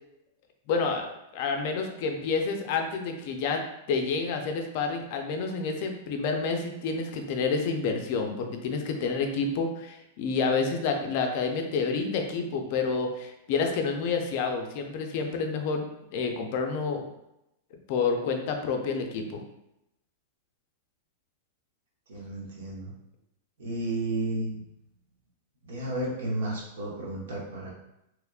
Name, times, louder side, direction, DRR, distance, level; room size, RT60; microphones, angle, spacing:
voice 1, 0.7-3.6 3.9-15.9 16.1-17.0 17.9-19.4, left 4 dB, 40° left, 4 dB, 0.4 m, -29 dB
voice 2, 22.1-22.9 23.6-24.6 25.6-27.7, right 1 dB, 90° right, -3 dB, 1.0 m, -32 dB
3.4 x 2.9 x 2.3 m, 0.85 s
supercardioid pair, 175°, 0 cm